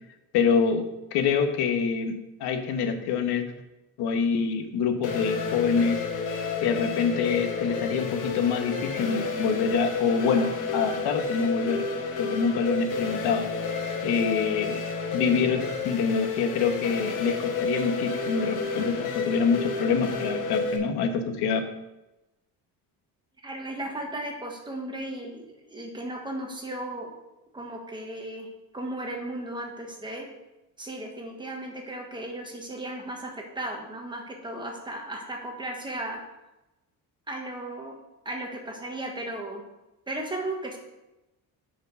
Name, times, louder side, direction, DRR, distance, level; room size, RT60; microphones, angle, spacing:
voice 1, 0.3-3.5 4.0-6.0 6.6-11.9 12.2-14.8 15.1-21.7, left 6 dB, 90° left, 6 dB, 1.2 m, -26 dB
sound 1, 5.0-20.8, left 4 dB, 55° left, 1.3 m, -31 dB
voice 2, 23.4-27.1 27.5-28.5 28.7-30.3 30.8-36.2 37.3-37.9 38.2-39.6 40.1-40.8, right 1 dB, 10° right, 1 dB, 1.2 m, -35 dB
9.7 x 5.1 x 5.2 m, 0.97 s
cardioid pair, 170°, 38 cm